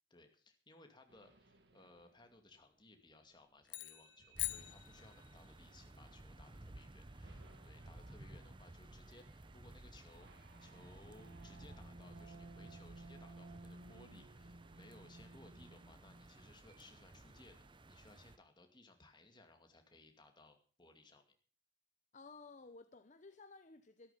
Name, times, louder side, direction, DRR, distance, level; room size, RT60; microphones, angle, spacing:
voice 1, 0.1-21.4, left 2 dB, 25° left, 5 dB, 2.4 m, -62 dB
sound 1, 1.1-2.4 3.6-6.1 6.5-6.8 7.2-17.5, right 2 dB, 65° right, 2.2 m, -60 dB
sound 2, 3.6-5.6, left 18 dB, 70° left, 0.7 m, -44 dB
sound 3, 4.3-18.4, right 1 dB, 25° right, 0.8 m, -56 dB
voice 2, 22.1-24.1, left 3 dB, 40° left, 9 dB, 0.8 m, -56 dB
13.5 x 13.0 x 5.8 m, 0.41 s
head